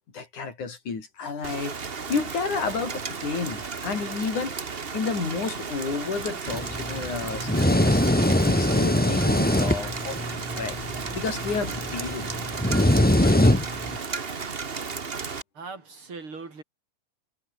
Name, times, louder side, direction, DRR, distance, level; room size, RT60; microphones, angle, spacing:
voice 1, 0.1-4.6 4.9-8.0 8.4-10.2 10.6-10.8 11.1-12.3 13.2-13.6, left 5 dB, 75° left, 6.2 m, -31 dB
Rain, 1.4-15.4, right 5 dB, 85° right, 0.5 m, -34 dB
sound 1, 6.5-14.0, left 1 dB, 15° left, 0.3 m, -23 dB
voice 2, 15.6-16.6, right 4 dB, 40° right, 5.7 m, -39 dB
omnidirectional pair, 3.5 m